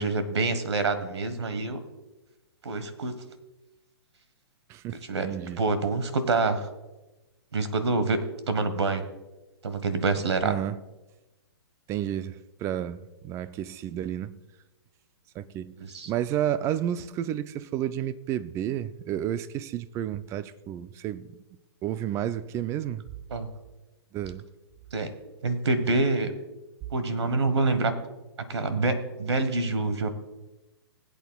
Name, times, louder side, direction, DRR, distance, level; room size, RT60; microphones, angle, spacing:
voice 1, 0.0-1.8 2.6-3.1 5.1-5.3 5.6-6.7 7.5-9.0 9.6-10.5 15.8-16.1 23.3-23.5 24.9-25.1 25.4-26.3 26.9-27.9 28.5-30.1, right 3 dB, 80° right, 1.4 m, -26 dB
voice 2, 4.7-5.6 10.4-10.8 11.9-14.3 15.4-15.8 16.1-21.4 21.8-23.0 24.1-24.4, right 11 dB, 20° right, 0.4 m, -31 dB
19.5 x 8.4 x 2.3 m
hypercardioid pair, 135°, 14 cm